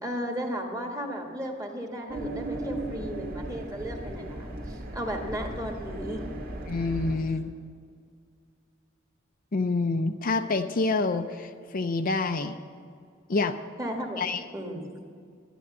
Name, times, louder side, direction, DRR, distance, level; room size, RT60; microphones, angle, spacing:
voice 1, 0.0-6.2 13.8-14.2 14.5-14.9, equal, 15° right, 2 dB, 1.6 m, -34 dB
sound 1, 2.1-7.2, right 1 dB, 50° right, 1.7 m, -36 dB
voice 2, 6.7-7.5 9.5-12.5 13.3-13.6 14.2-14.4, left 3 dB, 45° left, 7 dB, 0.5 m, -27 dB
12.0 x 10.0 x 7.5 m, 2.2 s
head